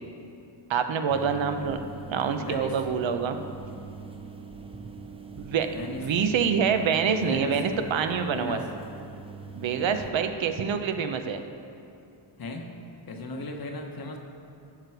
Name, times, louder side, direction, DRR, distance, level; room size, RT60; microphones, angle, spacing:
voice 1, 0.7-1.8 2.1-3.4 5.4-5.7 6.0-8.6 9.6-11.4, right 6 dB, 75° right, 7 dB, 0.8 m, -26 dB
sound 1, 1.1-10.1, right 4 dB, 10° right, 0.5 m, -42 dB
voice 2, 2.4-2.8 5.6-6.0 7.2-7.6 8.3-8.7 12.4-12.8 13.1-14.2, left 2 dB, 50° left, 3 dB, 1.0 m, -36 dB
12.0 x 6.7 x 4.5 m, 2.6 s
wide cardioid pair, 160°, 46 cm